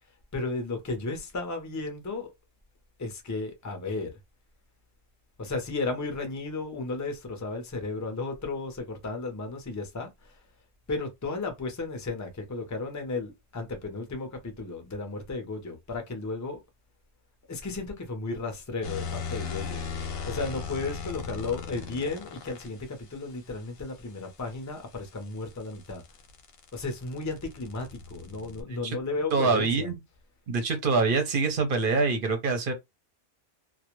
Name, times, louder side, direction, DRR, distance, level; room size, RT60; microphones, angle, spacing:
voice 1, 0.3-2.3 3.0-4.1 5.4-10.4 10.9-16.6 17.5-26.0 26.7-29.9, left 3 dB, 25° left, 0.4 m, -34 dB
sound 1, 18.8-22.7 25.0-28.6, left 6 dB, 60° left, 0.8 m, -37 dB
voice 2, 29.3-29.9 30.5-32.7, right 4 dB, 55° right, 0.7 m, -25 dB
2.3 x 2.1 x 3.0 m
omnidirectional pair, 1.3 m